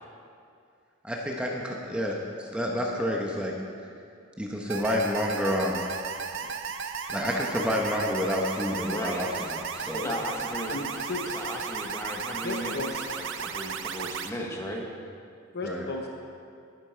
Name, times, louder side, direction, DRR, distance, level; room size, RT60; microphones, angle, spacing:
voice 1, 1.0-3.5 4.4-5.8 7.1-10.1 15.6-15.9, left 1 dB, 5° right, -1 dB, 0.9 m, -29 dB
sound 1, 4.7-14.3, right 6 dB, 60° right, 0.6 m, -35 dB
voice 2, 8.7-9.2 9.9-10.8 11.3-14.8, equal, 15° left, 0 dB, 1.1 m, -35 dB
voice 3, 10.7-11.3 12.4-12.9 15.5-16.1, left 3 dB, 50° left, 1 dB, 0.9 m, -34 dB
11.0 x 10.5 x 4.5 m, 2.4 s
head